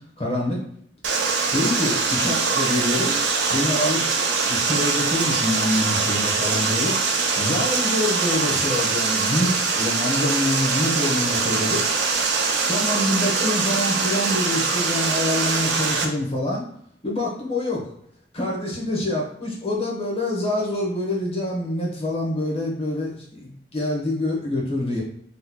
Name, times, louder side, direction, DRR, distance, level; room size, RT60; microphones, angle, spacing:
voice 1, 0.2-0.6 1.5-3.2 3.5-4.0 4.5-7.0 7.3-11.9 12.7-16.6 17.0-17.8 18.3-25.0, left 1 dB, 35° left, -2 dB, 1.1 m, -25 dB
Water, 1.0-16.0, right 4 dB, 70° right, 0.6 m, -23 dB
4.1 x 3.1 x 2.2 m, 0.66 s
head